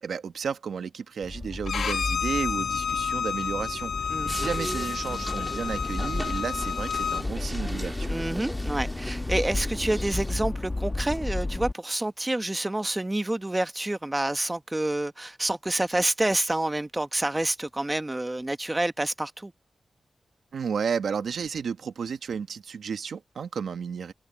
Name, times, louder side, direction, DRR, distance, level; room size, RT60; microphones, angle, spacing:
voice 1, 0.0-8.2 20.5-24.1, right 6 dB, 85° right, 1.5 m, -32 dB
Accelerating revving vroom, 1.2-11.7, left 2 dB, 30° left, 1.4 m, -33 dB
Bowed string instrument, 1.7-7.2, left 7 dB, 90° left, 1.1 m, -30 dB
sound 1, 4.3-10.4, equal, 5° right, 1.6 m, -38 dB
voice 2, 8.1-19.5, right 1 dB, 20° right, 1.1 m, -28 dB
open air
cardioid pair, 75°, 0 cm